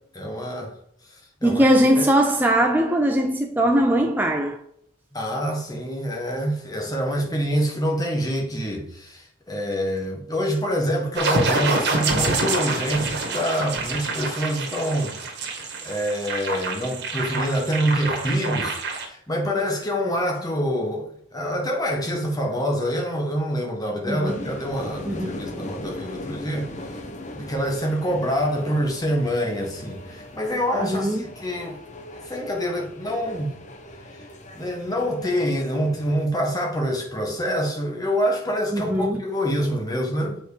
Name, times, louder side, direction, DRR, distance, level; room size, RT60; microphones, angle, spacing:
voice 1, 0.1-0.7 1.0-1.1 1.4-1.7 2.0-2.1 5.1-27.0 27.3-31.8 32.2-33.5 34.0-34.3 34.5-40.4, equal, 20° left, 1.6 m, -26 dB
voice 2, 1.4-4.6 12.1-12.3 24.1-24.3 25.1-25.4 30.8-31.2 38.7-39.2, right 1 dB, 10° right, 0.5 m, -20 dB
sound 1, 11.2-19.1, right 3 dB, 55° right, 2.0 m, -26 dB
sound 2, 24.2-36.3, left 1 dB, 35° left, 0.9 m, -39 dB
7.6 x 5.2 x 5.1 m
head